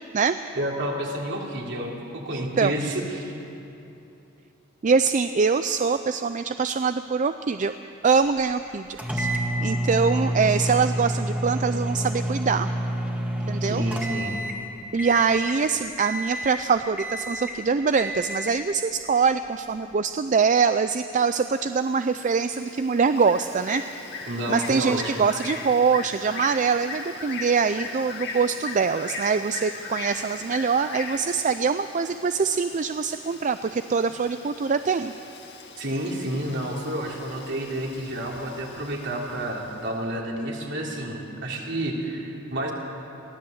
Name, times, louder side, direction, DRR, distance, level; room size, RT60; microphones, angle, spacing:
voice 1, 0.5-3.3 13.6-14.3 24.3-25.1 35.8-42.7, right 1 dB, 60° right, -1 dB, 3.3 m, -30 dB
voice 2, 2.3-2.7 4.8-7.7 8.0-9.3 9.6-12.7 13.5-13.8 14.9-23.8 24.2-35.1, right 5 dB, 40° right, 10 dB, 0.4 m, -24 dB
sound 1, 9.0-14.6 15.0-15.6 16.0-16.6 17.0-17.6 18.0-18.6, right 1 dB, 5° right, 1.9 m, -28 dB
Bird, 21.2-39.9, left 4 dB, 55° left, 2.0 m, -39 dB
22.5 x 16.0 x 7.9 m, 2.8 s
head